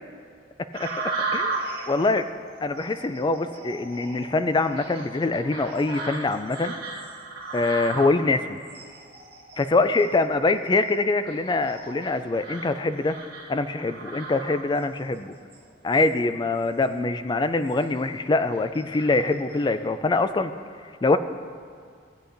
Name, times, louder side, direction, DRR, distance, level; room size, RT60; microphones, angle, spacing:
sound 1, 0.7-15.0 15.5-16.1 16.6-16.9 17.4-18.1 18.5-19.7, right 3 dB, 55° right, 1.6 m, -36 dB
voice 1, 1.9-2.3 2.6-6.7 7.5-8.6 9.6-13.2 13.5-15.3 15.8-20.5 21.0-21.2, left 3 dB, 25° left, 10 dB, 0.3 m, -24 dB
16.5 x 8.4 x 2.6 m, 2.2 s
head